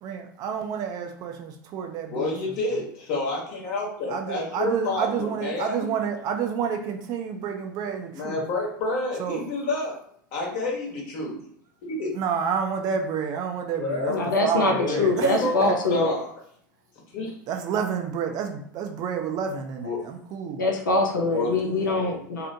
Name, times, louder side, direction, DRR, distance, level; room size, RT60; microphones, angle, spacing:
voice 1, 0.0-2.6 4.1-8.4 9.2-9.5 12.1-15.7 17.4-20.6, right 7 dB, 40° right, 4 dB, 0.4 m, -29 dB
voice 2, 2.1-5.9 8.1-10.0 10.3-11.4 11.9-12.1 13.8-14.2 14.7-16.3 17.1-17.4 19.8-20.0 21.3-21.5, left 2 dB, 50° left, -2 dB, 1.0 m, -29 dB
voice 3, 14.1-16.2 20.6-22.5, left 2 dB, 75° left, 2 dB, 0.5 m, -23 dB
2.8 x 2.0 x 2.6 m, 0.63 s
figure-of-eight pair, 85°, 11 cm